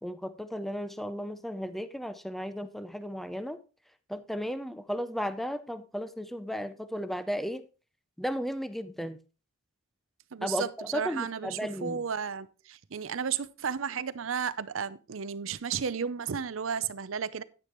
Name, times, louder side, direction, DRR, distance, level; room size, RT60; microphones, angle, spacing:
voice 1, 0.0-3.6 4.1-7.7 8.2-9.2 10.4-12.0, equal, ahead, 0.5 m, -34 dB
voice 2, 10.3-10.7 10.9-17.4, right 7 dB, 70° right, 0.6 m, -33 dB
10.5 x 9.7 x 3.0 m
head